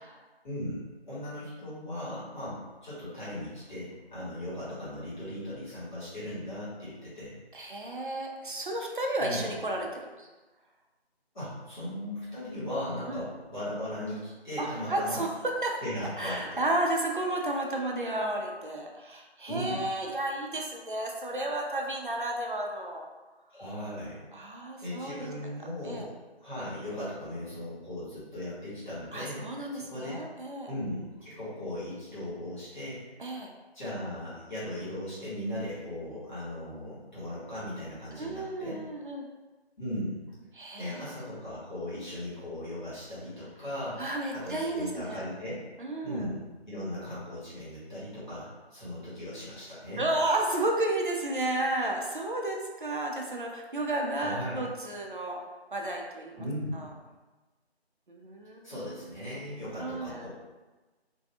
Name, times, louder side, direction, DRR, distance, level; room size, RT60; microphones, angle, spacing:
voice 1, 0.4-7.4 9.2-9.5 11.3-15.2 15.8-16.6 19.5-19.8 23.5-24.3 24.8-26.1 26.4-30.2 30.7-33.0 33.7-38.8 39.8-40.2 40.8-44.0 44.3-45.6 46.0-50.1 54.2-54.6 56.4-56.8 58.6-60.3, left 1 dB, 45° left, -11 dB, 1.3 m, -38 dB
voice 2, 7.5-10.3 13.1-13.2 14.6-15.8 16.2-23.1 24.3-25.3 25.8-26.1 29.1-30.8 33.2-33.5 38.2-39.3 40.5-41.3 44.0-45.3 45.8-46.3 50.0-55.4 55.7-56.5 56.7-56.9 58.1-58.7 59.8-60.3, right 1 dB, 50° right, 0 dB, 0.4 m, -32 dB
2.5 x 2.2 x 2.7 m, 1.2 s
figure-of-eight pair, 175°, 32 cm